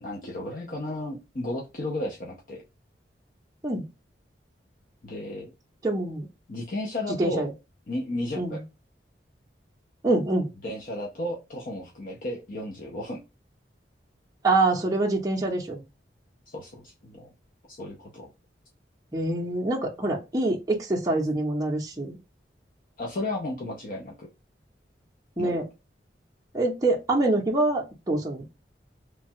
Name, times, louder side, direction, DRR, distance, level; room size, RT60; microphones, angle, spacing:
voice 1, 0.0-2.6 5.0-5.5 6.5-7.5 7.9-8.6 10.6-13.2 16.5-17.3 17.7-18.3 23.0-24.3 25.4-25.6, left 1 dB, 50° left, -1 dB, 0.6 m, -33 dB
voice 2, 5.8-6.3 7.2-7.5 8.4-8.6 10.0-10.5 14.4-15.8 19.1-22.2 25.4-25.6 26.5-28.4, right 2 dB, 20° right, -2 dB, 0.6 m, -25 dB
3.1 x 2.2 x 2.7 m, 0.26 s
head